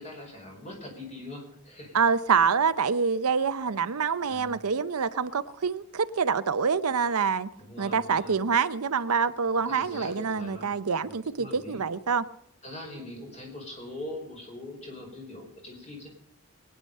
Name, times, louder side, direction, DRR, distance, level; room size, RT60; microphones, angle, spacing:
voice 1, 0.0-2.0 4.2-4.6 7.6-8.4 9.6-11.8 12.6-16.1, left 1 dB, 30° left, 5.1 m, -42 dB
voice 2, 1.9-7.5 7.8-12.2, right 5 dB, 85° right, 0.7 m, -26 dB
21.5 x 9.9 x 5.5 m
head